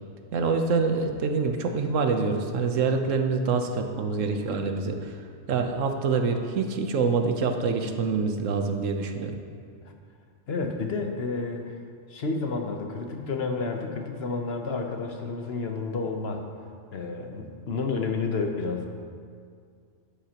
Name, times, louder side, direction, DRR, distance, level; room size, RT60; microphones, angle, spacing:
voice 1, 0.3-5.2 5.5-9.4, right 4 dB, 90° right, 5 dB, 1.2 m, -26 dB
voice 2, 10.5-11.8 12.1-16.4 16.9-18.9, left 4 dB, 55° left, 3 dB, 1.1 m, -30 dB
13.0 x 10.0 x 2.9 m, 2.2 s
omnidirectional pair, 1.3 m